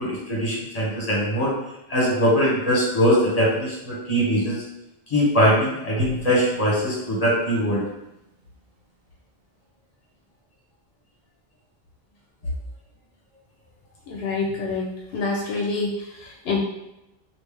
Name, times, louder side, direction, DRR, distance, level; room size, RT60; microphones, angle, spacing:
voice 1, 0.0-1.5 1.9-4.6 5.1-7.8, equal, 40° left, -5 dB, 1.2 m, -21 dB
Drum, 6.0-8.4, left 3 dB, 75° right, 0.9 m, -35 dB
voice 2, 14.1-16.6, left 3 dB, 80° left, -2 dB, 0.9 m, -27 dB
3.1 x 2.7 x 3.4 m, 0.90 s
omnidirectional pair, 1.0 m